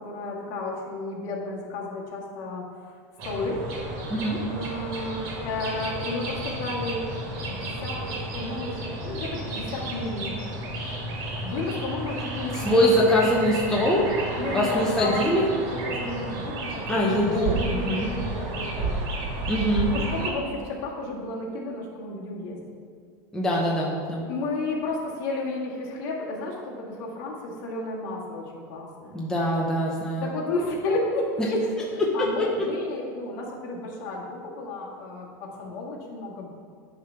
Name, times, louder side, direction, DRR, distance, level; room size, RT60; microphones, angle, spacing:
voice 1, 0.0-2.7 3.2-3.7 4.5-7.0 7.4-10.3 11.4-13.1 14.4-15.5 15.8-17.2 17.5-19.4 19.9-22.6 24.3-29.2 30.2-31.6 31.9-36.5, left 2 dB, 55° left, -3 dB, 1.9 m, -32 dB
sound 1, 3.2-20.3, right 2 dB, 55° right, 1.8 m, -32 dB
voice 2, 4.1-4.4 12.5-14.1 14.5-15.5 16.9-18.1 19.5-19.9 23.3-24.3 29.1-30.3 31.4-31.5 32.0-32.5, equal, 5° left, -4 dB, 0.8 m, -23 dB
10.0 x 3.4 x 5.7 m, 2.1 s
supercardioid pair, 150°, 10 cm